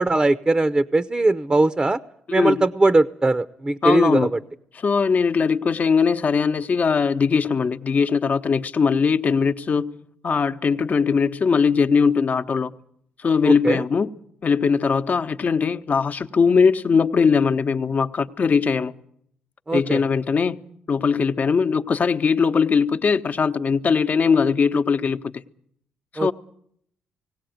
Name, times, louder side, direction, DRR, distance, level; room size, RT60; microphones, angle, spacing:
voice 1, 0.0-2.0 2.3-4.4 13.4-13.8 19.7-20.0 26.2-26.3, right 2 dB, 20° right, 0.8 m, -20 dB
voice 2, 3.8-4.3 4.8-9.9 10.2-12.7 13.2-14.1 14.4-18.9 19.7-20.6 20.9-25.2 26.1-26.3, left 5 dB, 45° left, 1.0 m, -20 dB
18.5 x 17.5 x 9.3 m
hypercardioid pair, 50°, 4 cm